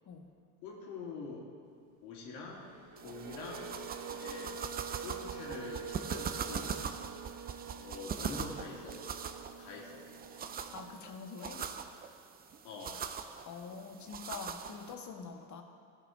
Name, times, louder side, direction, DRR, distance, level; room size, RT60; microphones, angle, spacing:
voice 1, 0.6-1.5 2.0-2.7 3.0-3.7 4.1-4.6 5.0-6.7 7.8-9.1 9.6-10.2 12.6-13.2, left 4 dB, 80° left, -2 dB, 2.7 m, -45 dB
sound 1, 2.5-11.0, right 6 dB, 40° right, 1.3 m, -46 dB
sound 2, 3.0-14.9, right 7 dB, 20° right, 0.4 m, -42 dB
voice 2, 10.7-11.7 13.4-15.6, left 5 dB, 35° left, 4 dB, 1.4 m, -45 dB
15.0 x 6.7 x 5.0 m, 2.3 s
supercardioid pair, 100°, 50 cm